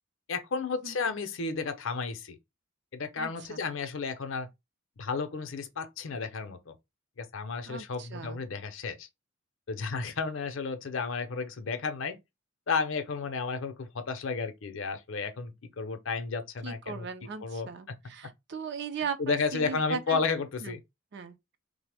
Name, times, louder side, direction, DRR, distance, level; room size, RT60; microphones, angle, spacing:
voice 1, 0.3-2.4 2.9-4.5 5.0-6.7 7.2-9.1 9.7-12.2 12.7-17.1 17.4-17.9 19.2-20.8, left 4 dB, 60° left, 0.5 m, -32 dB
voice 2, 3.2-3.6 7.7-8.4 16.6-20.2 20.6-20.7 21.1-21.4, right 5 dB, 50° right, 0.5 m, -38 dB
3.2 x 2.0 x 3.3 m
head